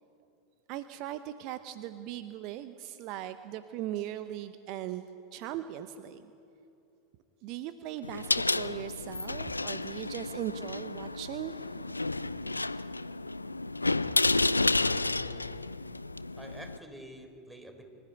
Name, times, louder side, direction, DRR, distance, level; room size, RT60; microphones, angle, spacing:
voice 1, 0.7-6.3 7.4-12.0, right 12 dB, 50° right, 11 dB, 0.8 m, -39 dB
sound 1, 8.0-16.8, left 2 dB, 85° left, 0.4 m, -31 dB
voice 2, 15.0-15.7 16.4-17.8, right 1 dB, 5° right, 5 dB, 3.8 m, -48 dB
25.0 x 14.5 x 9.1 m, 2.9 s
figure-of-eight pair, 85°, 0 cm